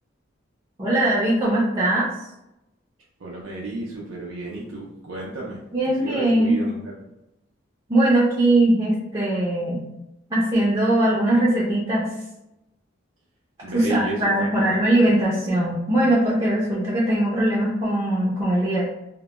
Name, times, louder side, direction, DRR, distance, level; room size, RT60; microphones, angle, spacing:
voice 1, 0.8-2.1 5.7-6.6 7.9-9.8 10.3-12.1 13.7-18.9, right 1 dB, 20° right, -7 dB, 0.5 m, -20 dB
voice 2, 3.2-5.6 6.0-6.9 13.6-14.8, right 3 dB, 90° right, -4 dB, 0.5 m, -32 dB
2.1 x 2.1 x 2.9 m, 0.90 s
head